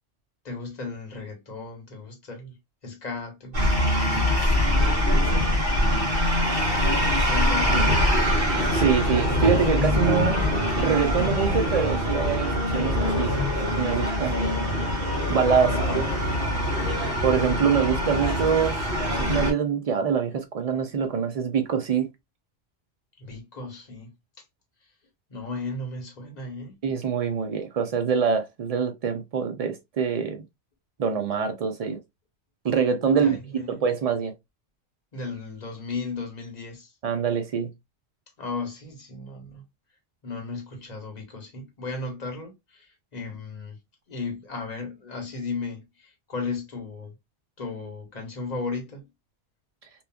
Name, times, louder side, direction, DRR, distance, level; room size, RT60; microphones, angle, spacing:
voice 1, 0.4-2.6 2.8-4.0 5.3-6.0 7.3-8.1 15.6-16.3 23.2-24.1 25.3-26.8 33.2-33.8 35.1-36.9 38.4-39.6 40.2-43.8 44.1-47.1 47.6-49.1, left 3 dB, 40° left, 1.0 m, -35 dB
sound 1, 3.5-19.5, left 1 dB, 55° right, 1.2 m, -23 dB
voice 2, 8.7-10.4 10.8-13.3 13.8-14.4 15.3-16.1 17.2-18.8 19.0-22.1 26.8-30.4 31.0-32.0 32.6-33.4 33.7-34.3 37.0-37.7, right 6 dB, 75° right, 0.3 m, -24 dB
2.9 x 2.3 x 2.2 m
omnidirectional pair, 1.2 m